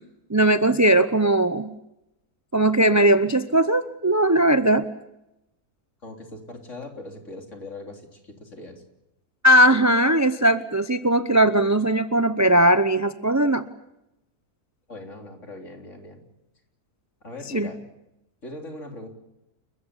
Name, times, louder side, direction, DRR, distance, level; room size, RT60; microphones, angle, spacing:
voice 1, 0.3-1.7 2.5-4.8 9.4-13.7 17.5-17.7, right 1 dB, 20° right, 11 dB, 0.5 m, -19 dB
voice 2, 6.0-8.8 14.9-16.2 17.2-17.8 18.4-19.1, left 2 dB, 50° left, 3 dB, 3.9 m, -40 dB
29.5 x 14.5 x 9.9 m, 0.90 s
omnidirectional pair, 1.7 m